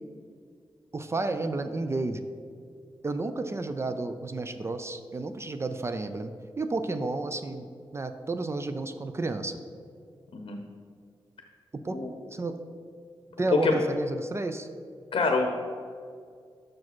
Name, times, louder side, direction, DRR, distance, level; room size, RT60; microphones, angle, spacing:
voice 1, 0.9-2.3 3.0-7.7 7.9-9.6 11.8-12.0 12.3-12.6 13.4-14.7, right 3 dB, 30° right, 9 dB, 0.3 m, -31 dB
voice 2, 15.1-15.5, left 3 dB, 70° left, 4 dB, 0.7 m, -26 dB
6.0 x 4.8 x 6.0 m, 2.1 s
wide cardioid pair, 120°, 9 cm